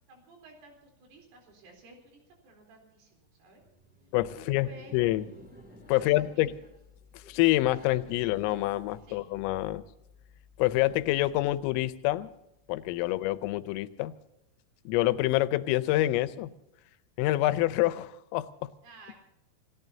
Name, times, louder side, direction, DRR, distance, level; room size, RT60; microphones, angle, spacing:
voice 1, 0.1-3.6 4.5-5.1 6.0-6.6 8.2-8.3 9.1-9.2 13.0-13.1 18.8-19.2, right 1 dB, 75° right, 3 dB, 6.4 m, -54 dB
Laughter, 3.5-9.8, equal, 5° right, 1.1 m, -55 dB
voice 2, 4.1-5.2 5.9-6.5 7.1-9.8 10.6-12.3 12.7-14.1 14.9-16.5 17.2-18.7, left 16 dB, 85° left, 13 dB, 3.4 m, -27 dB
28.0 x 17.0 x 2.8 m, 0.86 s
omnidirectional pair, 5.8 m